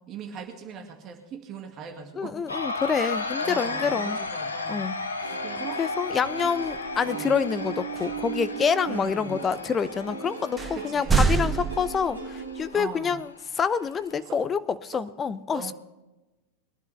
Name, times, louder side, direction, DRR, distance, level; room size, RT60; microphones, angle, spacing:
voice 1, 0.0-2.3 3.0-3.1 3.4-4.8 5.4-5.8 7.0-7.3 8.9-9.4 10.8-11.6 12.7-13.2 14.3-14.4 14.9-15.0 15.5-15.7, right 6 dB, 35° right, 3 dB, 2.1 m, -39 dB
voice 2, 2.2-4.2 4.7-5.4 5.8-15.7, left 6 dB, 20° left, 15 dB, 0.7 m, -27 dB
sound 1, 2.5-14.4, left 3 dB, 75° left, 1.5 m, -35 dB
Plucked string instrument, 5.2-12.6, right 6 dB, 75° right, 2.7 m, -38 dB
sound 2, 6.6-6.9 7.9-8.3 9.0-9.1 9.9-10.0 10.6-12.5, right 5 dB, 10° right, 1.2 m, -26 dB
22.5 x 11.5 x 3.3 m, 1.0 s
figure-of-eight pair, 90°, 0 cm